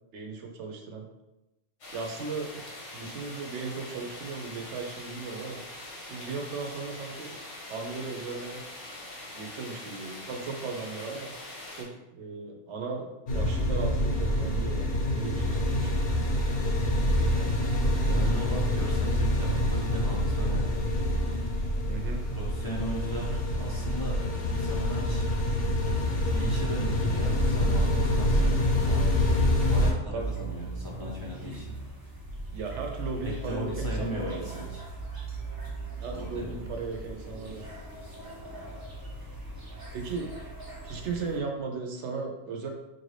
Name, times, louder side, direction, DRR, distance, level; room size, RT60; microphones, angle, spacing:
voice 1, 0.1-1.1 1.9-2.5 2.9-5.6 6.1-7.4 7.7-8.6 9.3-11.3 11.7-16.0 21.9-22.2 30.1-30.3 32.5-34.5 36.0-37.7 39.9-40.5 40.8-42.7, right 4 dB, 75° right, 2 dB, 0.9 m, -36 dB
sound 1, 1.8-11.8, left 1 dB, 85° left, 1.3 m, -43 dB
sound 2, 13.3-29.9, left 1 dB, 55° left, 0.8 m, -26 dB
voice 2, 18.1-21.0 22.3-24.2 24.6-25.3 26.3-28.6 28.9-29.1 29.7-31.8 33.2-34.8 36.1-36.6, equal, 25° left, -5 dB, 0.5 m, -37 dB
sound 3, 30.2-41.4, right 2 dB, 30° right, 0.4 m, -39 dB
4.3 x 2.6 x 3.2 m, 0.96 s
omnidirectional pair, 1.2 m